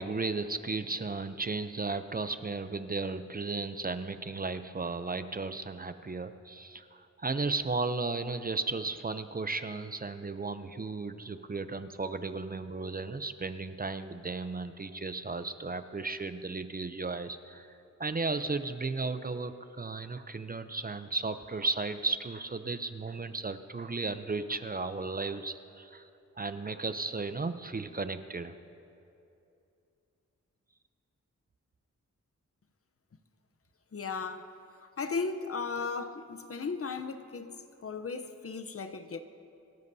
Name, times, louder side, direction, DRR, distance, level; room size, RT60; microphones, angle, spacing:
voice 1, 0.0-17.7 18.0-26.1 26.4-28.5, right 3 dB, 30° right, 0.5 m, -35 dB
voice 2, 33.9-34.5 35.0-37.6 37.8-39.2, left 4 dB, 50° left, 0.7 m, -36 dB
28.0 x 13.0 x 2.7 m
wide cardioid pair, 90°, 29 cm